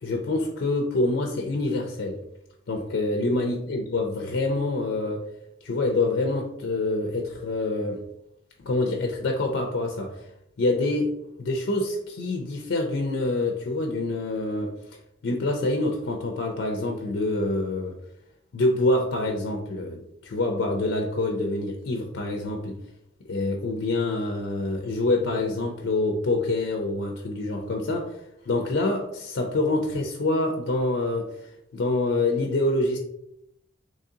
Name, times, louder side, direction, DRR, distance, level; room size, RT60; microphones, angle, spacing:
voice 1, 0.0-2.2 2.7-5.2 5.6-8.0 8.6-10.2 10.6-11.1 11.4-14.7 15.2-18.0 18.5-22.8 23.3-28.2 28.5-33.0, left 2 dB, 70° left, 3 dB, 0.5 m, -26 dB
3.7 x 3.1 x 2.7 m, 0.79 s
head